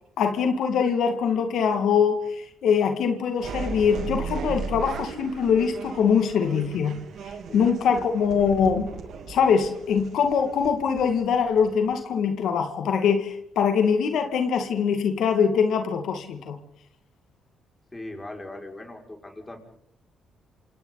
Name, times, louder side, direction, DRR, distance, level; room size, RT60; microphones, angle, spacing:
voice 1, 0.2-7.0 7.5-8.9 9.3-16.6, left 6 dB, 75° left, 5 dB, 2.3 m, -23 dB
sound 1, 3.4-12.0, right 5 dB, 70° right, 3.4 m, -36 dB
voice 2, 7.5-8.0 17.9-19.6, left 1 dB, 15° left, 1 dB, 6.2 m, -40 dB
27.5 x 27.5 x 4.2 m, 0.72 s
cardioid pair, 90°, 0 cm